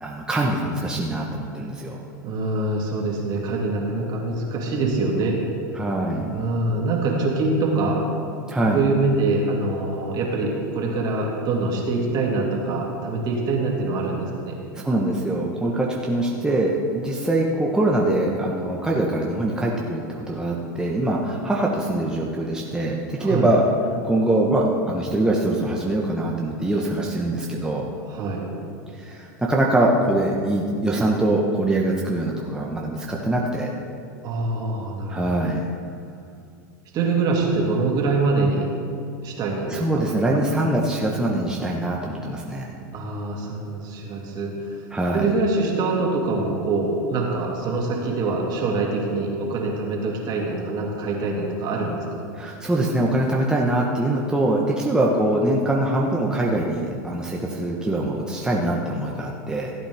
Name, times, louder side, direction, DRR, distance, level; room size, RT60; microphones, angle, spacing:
voice 1, 0.0-2.0 5.7-6.4 8.5-8.8 14.7-23.6 24.0-27.9 28.9-33.7 35.1-35.7 39.7-42.7 44.9-45.3 52.3-59.7, right 1 dB, 5° right, -2 dB, 1.1 m, -23 dB
voice 2, 2.2-5.4 6.3-8.0 8.7-14.6 23.2-23.5 28.1-28.5 34.2-35.2 35.5-35.6 36.9-38.7 39.2-39.9 40.3-40.6 42.9-44.8 45.1-52.2, right 3 dB, 40° right, -1 dB, 2.5 m, -24 dB
15.5 x 8.8 x 3.5 m, 2.4 s
hypercardioid pair, 105°, 10 cm